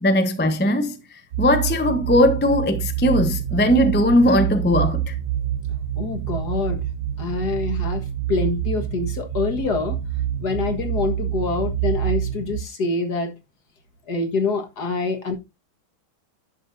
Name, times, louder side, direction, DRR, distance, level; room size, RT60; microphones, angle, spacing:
voice 1, 0.0-5.1, left 1 dB, 10° left, 0.6 m, -19 dB
sound 1, 1.3-12.6, right 10 dB, 60° right, 1.2 m, -27 dB
voice 2, 6.0-6.9 7.2-10.0 10.4-13.3 14.1-15.4, left 4 dB, 55° left, 2.1 m, -26 dB
10.5 x 7.3 x 2.7 m
omnidirectional pair, 2.1 m